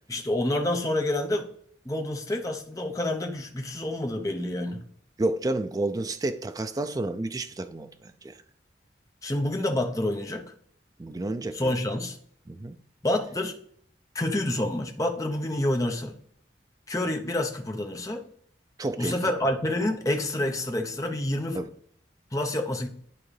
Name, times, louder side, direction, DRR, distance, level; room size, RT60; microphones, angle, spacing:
voice 1, 0.1-1.5 1.8-4.9 9.2-10.5 11.5-12.2 13.0-13.6 14.1-16.2 16.9-18.2 19.0-21.6 22.3-22.9, left 1 dB, 20° left, 0.8 m, -28 dB
voice 2, 5.2-8.3 11.0-11.7 12.5-12.8 18.8-19.2 21.5-21.7, right 2 dB, 20° right, 0.4 m, -30 dB
11.0 x 3.7 x 3.3 m
head